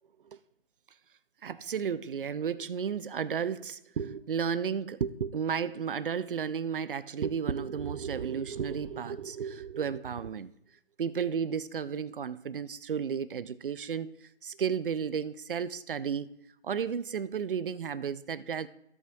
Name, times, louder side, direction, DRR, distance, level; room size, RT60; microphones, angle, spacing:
voice 1, 1.4-10.5 11.0-16.3 16.6-18.7, right 7 dB, 50° right, 0.5 m, -33 dB
15.5 x 5.8 x 2.6 m
hypercardioid pair, 160°, 34 cm